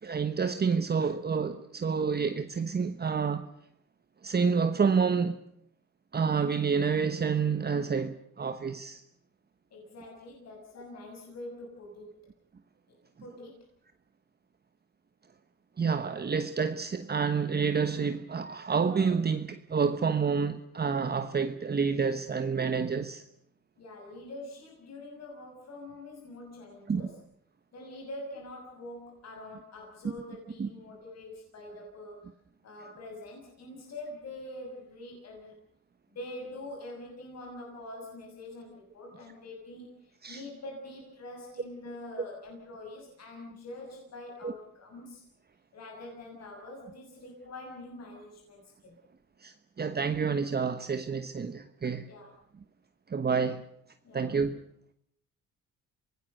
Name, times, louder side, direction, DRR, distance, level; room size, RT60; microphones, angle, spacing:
voice 1, 0.0-3.5 4.2-5.4 6.1-9.0 15.8-23.2 26.9-27.0 30.6-30.7 40.2-40.4 44.4-44.5 49.4-52.1 53.1-53.6 54.1-54.6, right 5 dB, 30° right, 1.2 m, -28 dB
voice 2, 9.7-12.3 13.2-13.6 23.8-27.1 27.7-32.3 32.6-35.5 36.1-45.2 45.7-49.0 52.0-52.3 54.0-54.3, left 1 dB, 60° left, 6.7 m, -45 dB
27.0 x 18.5 x 6.7 m
cardioid pair, 90°, 30 cm